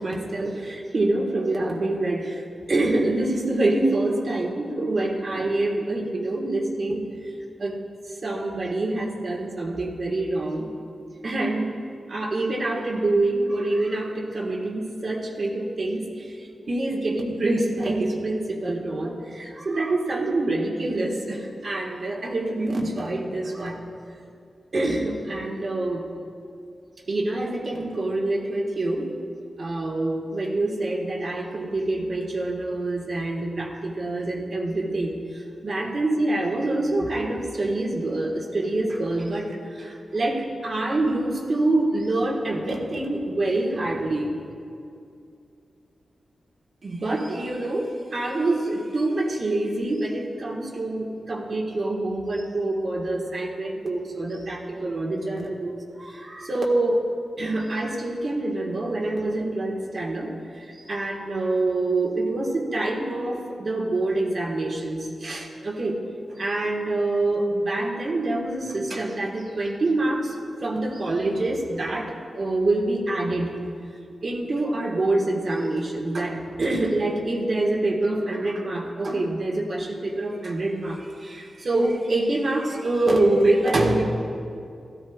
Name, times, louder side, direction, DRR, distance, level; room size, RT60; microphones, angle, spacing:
voice 1, 0.0-7.0 7.6-7.8 8.2-10.7 11.2-11.7 12.1-23.8 24.7-26.0 27.1-29.1 29.6-44.4 46.8-57.1 57.4-66.0 66.3-70.3 70.6-73.6 74.2-84.0, right 2 dB, 55° right, -1 dB, 1.5 m, -26 dB
15.0 x 13.0 x 2.4 m, 2.5 s
wide cardioid pair, 80°, 0 cm